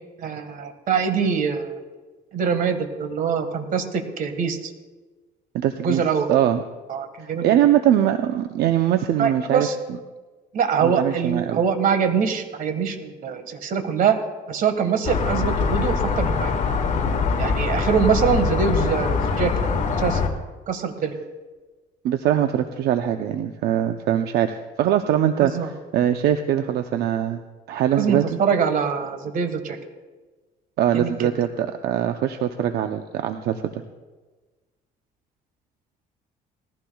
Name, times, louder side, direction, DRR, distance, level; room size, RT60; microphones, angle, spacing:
voice 1, 0.2-1.8 2.3-4.7 5.8-6.3 6.9-7.5 9.2-9.7 10.5-16.5 17.4-19.5 20.0-20.2 20.7-21.2 25.4-25.7 27.9-29.8 30.9-31.3, right 6 dB, 55° right, 7 dB, 1.6 m, -23 dB
voice 2, 5.5-6.0 6.3-6.6 7.2-9.7 10.8-11.6 22.0-25.5 25.9-27.4 27.7-28.2 30.8-33.7, right 11 dB, 75° right, 7 dB, 0.7 m, -22 dB
sound 1, 15.1-20.3, left 5 dB, 50° left, 1.9 m, -23 dB
19.5 x 15.0 x 2.3 m, 1.3 s
cardioid pair, 110°, 17 cm